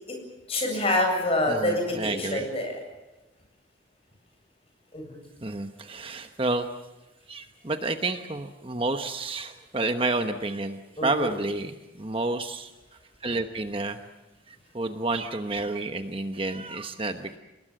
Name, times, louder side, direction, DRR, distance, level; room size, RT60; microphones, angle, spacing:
voice 1, 0.5-2.8 4.9-5.2 11.0-11.3, left 1 dB, 35° left, 3 dB, 7.8 m, -26 dB
voice 2, 1.5-2.5 5.4-6.7 7.3-12.7 13.2-14.0 14.7-17.4, right 2 dB, 30° right, 7 dB, 1.1 m, -30 dB
29.0 x 19.5 x 7.6 m, 1.0 s
head